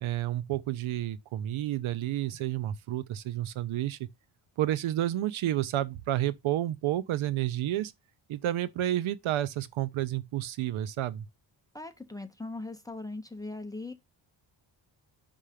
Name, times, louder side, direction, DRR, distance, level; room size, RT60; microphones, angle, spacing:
voice 1, 0.0-4.1 4.6-7.9 8.3-11.3, right 13 dB, 90° right, 0.7 m, -30 dB
voice 2, 11.7-13.9, left 2 dB, 10° left, 0.6 m, -39 dB
5.6 x 3.6 x 4.9 m
wide cardioid pair, 155°, 47 cm